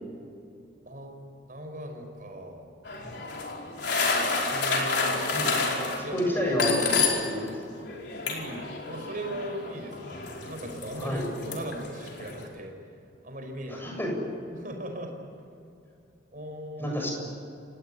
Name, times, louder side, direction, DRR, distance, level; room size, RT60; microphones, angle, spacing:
voice 1, 0.9-1.2 1.5-2.7 4.5-5.5 6.0-6.2 8.2-12.7 13.2-13.9 14.5-15.1 16.3-17.0, right 1 dB, 45° right, 4 dB, 5.3 m, -39 dB
sound 1, 2.8-7.5 7.7-12.5, left 4 dB, 60° left, 4.8 m, -30 dB
voice 2, 6.1-7.5 10.9-11.3 13.7-14.2 16.8-17.1, equal, 10° left, 0 dB, 7.2 m, -29 dB
29.5 x 18.0 x 10.0 m, 2.6 s
head